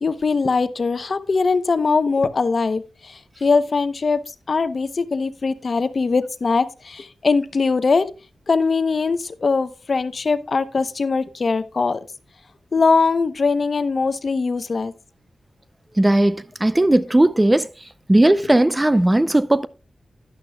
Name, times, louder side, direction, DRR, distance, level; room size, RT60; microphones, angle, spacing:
voice 1, 0.0-2.8 3.4-4.2 4.5-8.1 8.5-12.0 12.7-14.9, left 4 dB, 55° left, 0.8 m, -21 dB
voice 2, 16.0-17.7 18.1-19.7, right 1 dB, 20° right, 0.6 m, -17 dB
12.0 x 11.0 x 2.3 m
cardioid pair, 70°, 0 cm